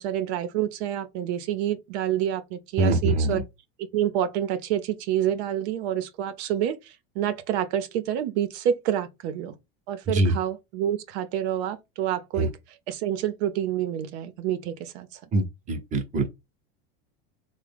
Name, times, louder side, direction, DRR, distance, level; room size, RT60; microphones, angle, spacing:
voice 1, 0.0-3.4 3.9-9.5 9.9-15.2, right 10 dB, 80° right, 0.6 m, -28 dB
voice 2, 2.8-3.4 10.1-10.3 12.4-12.5 15.3-16.3, right 2 dB, 25° right, 0.7 m, -23 dB
3.5 x 2.1 x 3.4 m
supercardioid pair, 140°, 32 cm